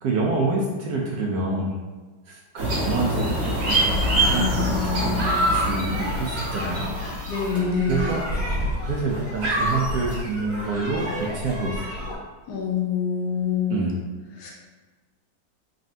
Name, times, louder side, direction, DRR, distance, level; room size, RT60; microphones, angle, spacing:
voice 1, 0.0-1.7 2.3-5.2 5.4-6.9 7.9-8.2 8.8-11.1 11.3-12.0 13.7-13.9, right 3 dB, 70° right, -2 dB, 0.9 m, -27 dB
sound 1, 2.6-7.4, right 1 dB, 50° right, 1.1 m, -26 dB
sound 2, 3.6-12.2, equal, 35° right, 1.6 m, -29 dB
voice 2, 4.2-5.4 7.3-8.2 12.5-13.9 14.3-14.5, left 5 dB, 65° left, -2 dB, 1.3 m, -26 dB
4.1 x 3.1 x 2.7 m, 1.3 s
omnidirectional pair, 2.1 m